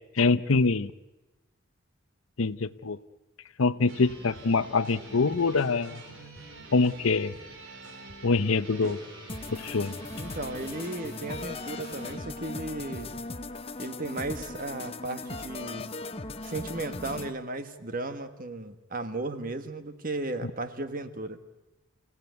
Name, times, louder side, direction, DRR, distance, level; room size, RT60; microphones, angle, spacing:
voice 1, 0.2-0.9 2.4-3.0 3.6-6.0 6.7-7.3 8.2-9.0 9.5-9.9 20.4-20.5, left 4 dB, 75° left, 15 dB, 0.7 m, -24 dB
sound 1, 3.9-12.2, right 2 dB, 65° right, 4.4 m, -46 dB
sound 2, 9.3-17.3, left 3 dB, 25° left, 0.8 m, -38 dB
voice 2, 10.1-13.1 13.8-15.9 16.4-21.4, right 2 dB, 40° right, 9 dB, 1.4 m, -35 dB
29.0 x 17.0 x 9.3 m, 1.1 s
head